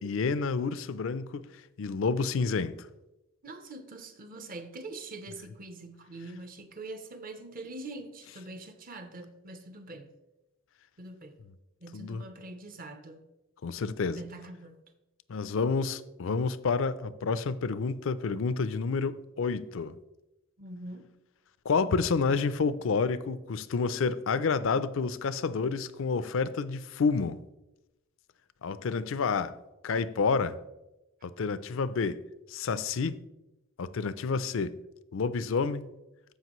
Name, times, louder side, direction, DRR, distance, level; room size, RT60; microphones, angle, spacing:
voice 1, 0.0-1.5 1.8-2.8 11.9-12.2 13.6-14.2 15.3-19.9 21.7-27.4 28.6-29.6 29.8-30.6 31.2-32.2 32.5-33.2 33.8-34.8 35.1-35.9, left 4 dB, 65° left, 0.4 m, -29 dB
voice 2, 3.4-10.1 11.0-11.4 11.8-13.2 14.1-14.8 20.6-21.1, right 2 dB, 40° right, 0.8 m, -44 dB
13.5 x 5.0 x 3.1 m
head